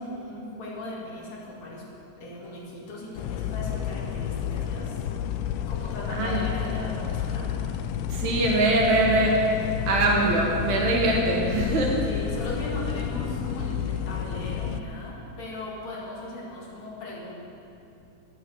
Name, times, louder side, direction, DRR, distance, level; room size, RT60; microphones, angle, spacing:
voice 1, 0.0-1.8 2.2-5.0 5.7-7.5 12.1-17.4, left 1 dB, 65° left, -4 dB, 3.4 m, -37 dB
sound 1, 3.2-14.8, left 9 dB, 85° left, 2.0 m, -30 dB
voice 2, 6.1-6.4 8.1-9.5 9.9-12.0, right 2 dB, 70° right, -1 dB, 2.8 m, -22 dB
11.5 x 9.1 x 7.0 m, 2.7 s
omnidirectional pair, 3.5 m